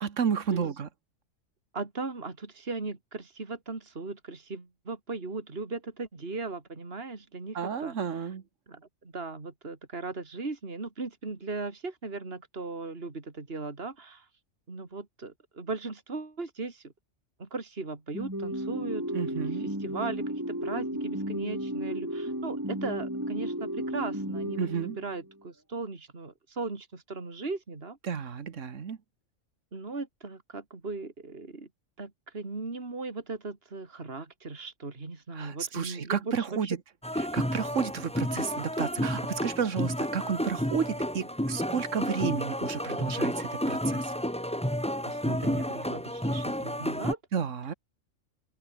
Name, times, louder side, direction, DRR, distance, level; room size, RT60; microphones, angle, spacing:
voice 1, 0.0-0.9 7.6-8.4 19.1-19.7 24.6-25.0 28.0-29.0 35.4-36.8 37.3-44.1 47.3-47.7, right 7 dB, 70° right, 1.7 m, -31 dB
voice 2, 1.7-8.2 8.7-14.3 14.7-16.8 17.4-28.0 29.7-31.7 32.0-36.8 45.1-47.2, right 3 dB, 50° right, 3.0 m, -38 dB
sound 1, 18.1-25.3, right 1 dB, 15° right, 4.7 m, -34 dB
sound 2, 37.0-47.1, equal, 5° left, 2.6 m, -31 dB
omnidirectional pair, 1.4 m